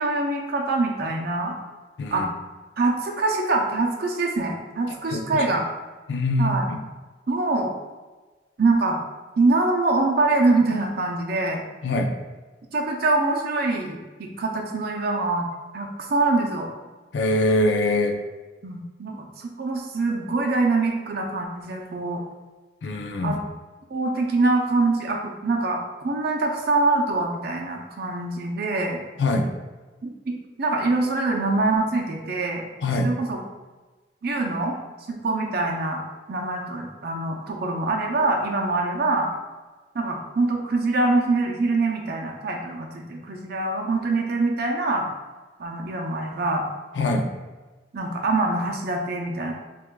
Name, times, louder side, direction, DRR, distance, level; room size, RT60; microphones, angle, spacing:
voice 1, 0.0-1.6 2.1-2.3 2.8-5.7 6.4-6.7 7.3-7.7 8.6-9.0 9.4-11.6 12.7-15.5 15.7-16.7 18.6-22.2 23.2-23.4 23.9-29.0 30.0-32.6 33.0-33.4 34.2-34.8 35.1-36.0 36.3-39.3 39.9-45.1 45.6-46.7 47.9-49.5, right 3 dB, 60° right, 1 dB, 0.6 m, -24 dB
voice 2, 5.1-5.4 6.1-6.8 11.8-12.1 17.1-18.1 22.8-23.4 29.2-29.5 32.8-33.1 47.0-47.3, left 2 dB, 75° left, 4 dB, 0.5 m, -23 dB
6.0 x 2.4 x 2.2 m, 1.3 s
head